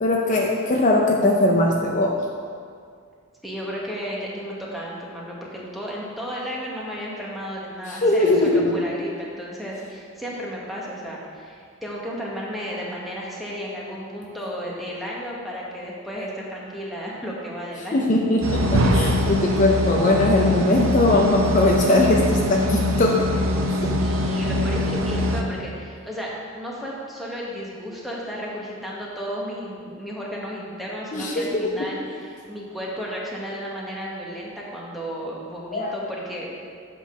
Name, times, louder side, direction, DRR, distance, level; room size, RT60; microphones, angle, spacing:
voice 1, 0.0-2.2 7.9-8.8 17.9-23.2 23.7-24.0 31.1-31.9 35.7-36.0, left 2 dB, 40° left, 0 dB, 0.5 m, -20 dB
voice 2, 3.4-18.1 23.7-36.6, equal, ahead, -5 dB, 1.2 m, -33 dB
sound 1, 18.4-25.4, left 1 dB, 85° right, 0.7 m, -23 dB
8.1 x 3.9 x 6.1 m, 2.2 s
head